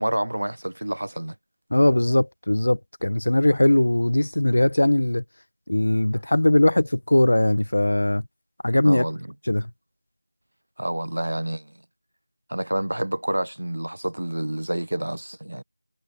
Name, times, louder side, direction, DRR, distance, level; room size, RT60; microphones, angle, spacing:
voice 1, 0.0-1.3 8.8-9.3 10.8-11.7 12.5-15.6, right 1 dB, 75° right, 1.4 m, -28 dB
voice 2, 1.7-5.2 5.7-8.2 8.6-9.0 9.5-9.7, left 1 dB, 50° left, 1.1 m, -20 dB
figure-of-eight pair, 180°, 0 cm